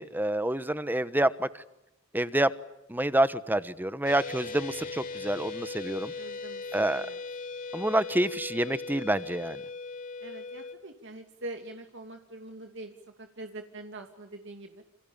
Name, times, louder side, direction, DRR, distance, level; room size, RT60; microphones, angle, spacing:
voice 1, 0.0-1.5 2.1-2.5 2.9-6.1 6.7-7.0 7.7-9.6, right 1 dB, 10° right, 14 dB, 1.2 m, -27 dB
sound 1, 4.0-10.7, left 4 dB, 45° left, 4.7 m, -39 dB
voice 2, 6.2-7.2 10.2-14.8, right 2 dB, 60° right, 5 dB, 2.6 m, -44 dB
28.5 x 28.5 x 7.2 m, 0.87 s
head